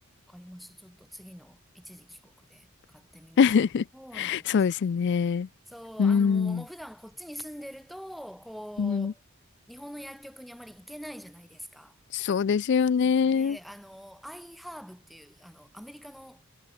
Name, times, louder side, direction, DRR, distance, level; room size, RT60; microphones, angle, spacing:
voice 1, 0.3-3.5 3.9-4.6 5.7-9.2 9.7-12.0 13.0-16.4, equal, ahead, 1.9 m, -44 dB
voice 2, 3.4-3.8 4.1-5.5 6.0-6.6 8.8-9.1 12.1-13.6, left 6 dB, 55° left, 0.3 m, -23 dB
head